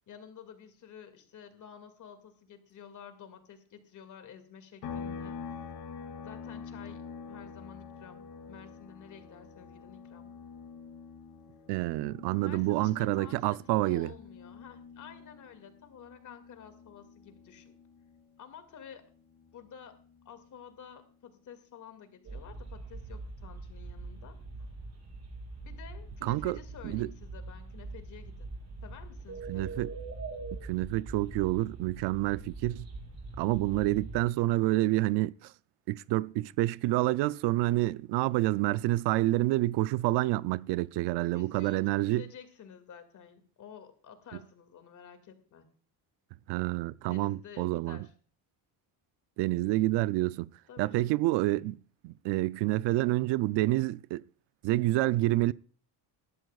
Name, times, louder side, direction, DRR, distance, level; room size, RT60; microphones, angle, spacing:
voice 1, 0.1-5.4 6.2-7.0 7.3-10.3 12.4-17.8 18.4-19.0 19.5-19.9 20.2-24.3 25.6-28.6 28.8-29.9 41.3-45.6 47.1-48.1 50.7-51.2, left 8 dB, 45° left, 2.2 m, -51 dB
sound 1, 4.8-18.4 18.7-20.9, left 6 dB, 65° left, 2.4 m, -46 dB
voice 2, 11.7-14.1 26.2-26.6 26.8-27.1 29.5-29.9 30.6-32.9 33.4-35.5 35.9-42.3 46.5-48.1 49.4-50.5 50.8-51.8 52.0-54.2 54.6-55.5, right 17 dB, 90° right, 0.5 m, -28 dB
sound 2, 22.2-34.2, right 3 dB, 40° right, 7.8 m, -43 dB
19.5 x 13.0 x 2.4 m
cardioid pair, 150°, 41 cm